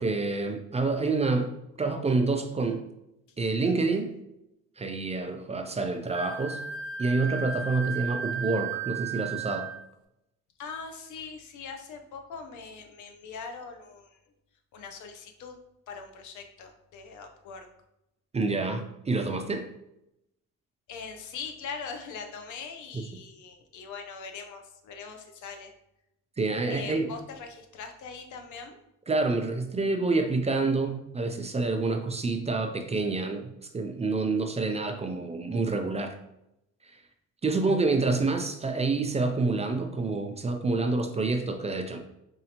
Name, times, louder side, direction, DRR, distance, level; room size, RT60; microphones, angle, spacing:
voice 1, 0.0-1.5 1.8-2.8 3.4-4.1 4.8-6.6 7.0-9.7 18.3-19.7 22.9-23.0 26.4-27.1 29.1-36.1 36.8-37.0 37.4-42.0, right 3 dB, 20° right, 5 dB, 0.4 m, -28 dB
Wind instrument woodwind instrument, 6.1-9.8, right 6 dB, 80° right, 0.6 m, -35 dB
voice 2, 10.6-14.2 14.7-15.6 15.9-17.7 20.9-25.7 26.7-28.8, left 5 dB, 75° left, 5 dB, 0.6 m, -41 dB
4.1 x 2.7 x 2.8 m, 0.84 s
cardioid pair, 90°, 30 cm